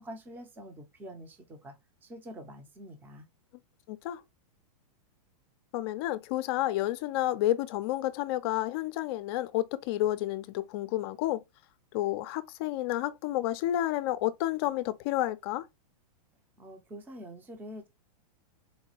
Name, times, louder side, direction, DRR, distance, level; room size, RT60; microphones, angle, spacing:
voice 1, 0.0-3.3 16.6-17.9, equal, 10° right, 0.5 m, -46 dB
voice 2, 3.9-4.2 5.7-11.4 11.9-15.7, left 14 dB, 40° left, 0.4 m, -30 dB
4.1 x 2.2 x 2.8 m
hypercardioid pair, 145°, 19 cm